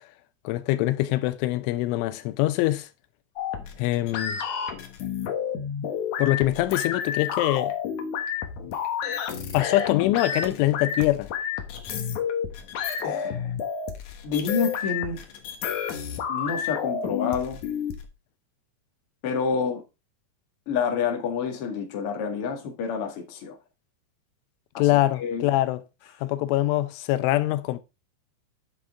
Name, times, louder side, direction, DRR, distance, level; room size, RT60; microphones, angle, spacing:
voice 1, 0.4-2.9 3.8-4.4 6.2-7.7 9.5-11.3 24.8-25.8 26.2-27.8, left 16 dB, 90° left, 3.3 m, -24 dB
sound 1, 3.4-18.0, left 8 dB, 75° left, 1.8 m, -30 dB
voice 2, 13.0-13.5 14.2-15.2 16.3-17.6 19.2-19.8 20.6-23.6 24.7-24.9 25.2-25.5 26.1-26.2, left 6 dB, 55° left, 1.6 m, -28 dB
10.0 x 6.6 x 3.7 m
omnidirectional pair, 5.4 m